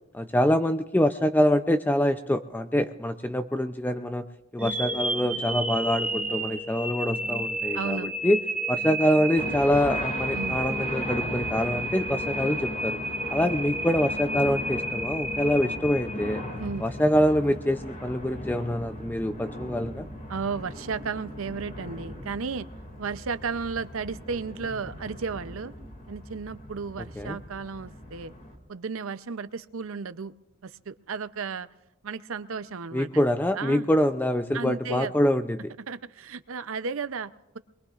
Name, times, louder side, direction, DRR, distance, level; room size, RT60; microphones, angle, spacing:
voice 1, 0.1-4.2 4.5-8.4 8.7-13.0 13.3-16.4 16.8-20.1 27.2-27.4 32.9-35.7, equal, 10° left, 9 dB, 0.4 m, -25 dB
sound 1, 4.6-16.7, right 1 dB, 5° right, 1.3 m, -31 dB
voice 2, 7.7-8.1 10.3-10.6 16.6-16.8 20.3-22.7 23.0-25.7 26.1-28.3 28.7-30.3 30.6-31.7 32.0-33.3 33.6-33.9 34.5-35.1 35.9-37.6, right 5 dB, 75° right, 13 dB, 0.6 m, -34 dB
sound 2, 9.3-28.6, left 1 dB, 40° left, 2.3 m, -38 dB
23.0 x 22.0 x 2.5 m, 0.97 s
head